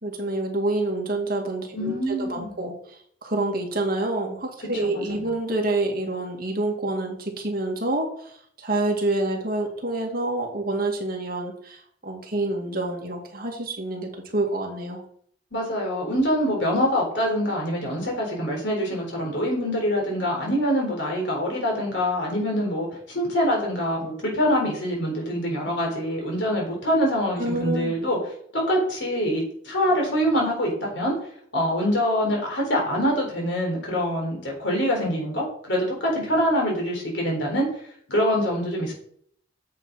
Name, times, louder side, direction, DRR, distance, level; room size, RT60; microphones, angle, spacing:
voice 1, 0.0-8.3 8.6-15.0 27.4-27.9, right 2 dB, 50° right, 1 dB, 2.0 m, -27 dB
voice 2, 1.7-2.5 4.9-5.0 15.5-28.2 28.5-31.1 31.5-37.7 38.1-38.9, equal, 70° left, -1 dB, 4.2 m, -25 dB
8.3 x 7.6 x 4.9 m, 0.64 s
head